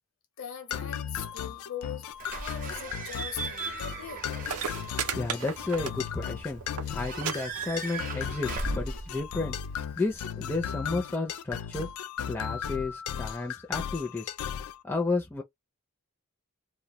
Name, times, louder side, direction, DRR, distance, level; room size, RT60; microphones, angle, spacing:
voice 1, 0.4-4.2, left 8 dB, 65° left, 0.7 m, -41 dB
sound 1, 0.7-14.8, left 8 dB, 80° left, 0.3 m, -36 dB
Slam / Squeak / Alarm, 2.2-10.2, right 3 dB, 40° right, 0.5 m, -39 dB
sound 2, 4.1-4.2 4.4-6.3 6.6-6.9 7.2-7.3 7.6-8.1 8.9-9.0, right 7 dB, 90° right, 0.5 m, -34 dB
voice 2, 5.1-6.6 6.9-9.6 10.0-11.9 12.3-14.3 14.8-15.4, left 3 dB, 10° left, 0.4 m, -32 dB
2.1 x 2.1 x 2.8 m
head